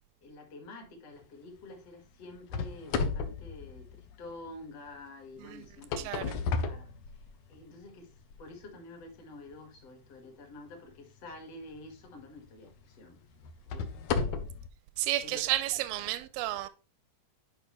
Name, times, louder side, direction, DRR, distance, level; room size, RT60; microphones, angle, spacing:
voice 1, 0.2-7.0 7.5-8.1 8.4-13.2 13.7-14.5 15.2-15.6 16.4-16.6, left 2 dB, 50° left, 2.6 m, -49 dB
sound 1, 2.5-4.5 5.6-7.6 8.2-8.3 9.0-9.1 11.7-11.9 12.5-12.6 13.4-14.7, left 5 dB, 75° left, 1.6 m, -33 dB
voice 2, 15.0-16.7, right 15 dB, 90° right, 2.4 m, -32 dB
10.5 x 5.3 x 3.2 m
omnidirectional pair, 4.1 m